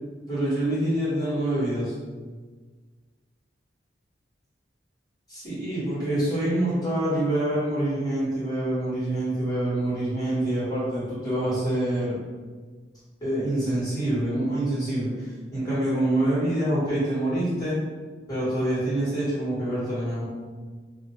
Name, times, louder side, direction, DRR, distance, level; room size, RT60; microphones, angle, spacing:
voice 1, 0.3-1.9 5.3-12.2 13.2-17.8 18.3-20.3, right 1 dB, 20° left, -11 dB, 1.4 m, -26 dB
2.8 x 2.1 x 3.0 m, 1.4 s
head